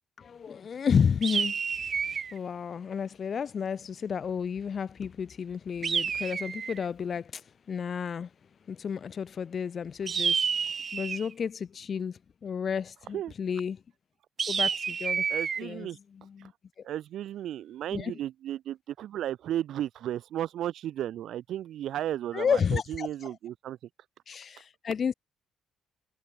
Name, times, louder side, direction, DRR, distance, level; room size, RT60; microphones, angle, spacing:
voice 1, 0.2-8.3 8.7-13.8 14.5-15.2 15.6-15.9 16.1-16.5 16.8-16.9 17.9-18.1 22.3-23.4 24.3-25.1, left 7 dB, 40° left, 6.4 m, -32 dB
sound 1, 1.2-2.4 5.8-6.9 10.1-11.3 14.4-15.6, right 6 dB, 35° right, 1.6 m, -29 dB
voice 2, 15.3-16.0 16.4-16.5 16.8-23.8, right 12 dB, 65° right, 2.5 m, -34 dB
cardioid pair, 125°, 0 cm